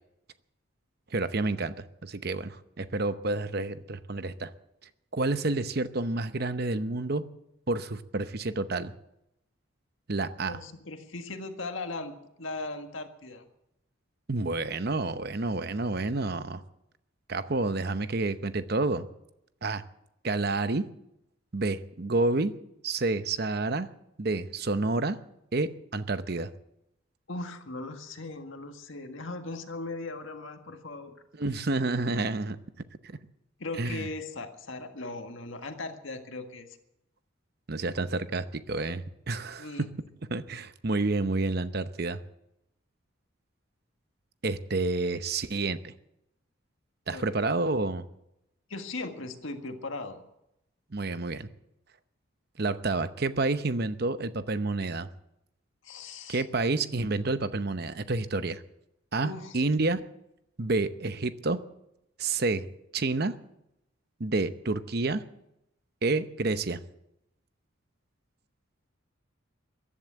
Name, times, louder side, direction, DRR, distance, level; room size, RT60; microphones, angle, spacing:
voice 1, 1.1-4.5 5.1-7.2 7.7-8.9 10.1-10.6 14.3-16.6 17.3-19.1 19.6-19.8 20.2-20.8 21.5-22.5 22.8-23.9 24.2-25.2 25.5-26.5 31.4-32.6 33.8-34.1 37.7-39.9 40.3-42.2 44.4-45.9 47.1-48.0 50.9-51.5 52.6-55.1 56.3-58.6 59.1-60.0 60.6-61.6 62.2-62.7 62.9-63.3 64.2-65.2 66.0-66.8, right 3 dB, 50° right, 12 dB, 0.8 m, -29 dB
voice 2, 10.5-13.5 27.3-31.2 31.6-31.7 33.6-36.7 39.6-39.9 47.1-47.3 48.7-50.2 55.8-56.5 59.2-59.6, left 2 dB, 70° left, 5 dB, 1.7 m, -38 dB
15.0 x 11.5 x 8.1 m, 0.83 s
head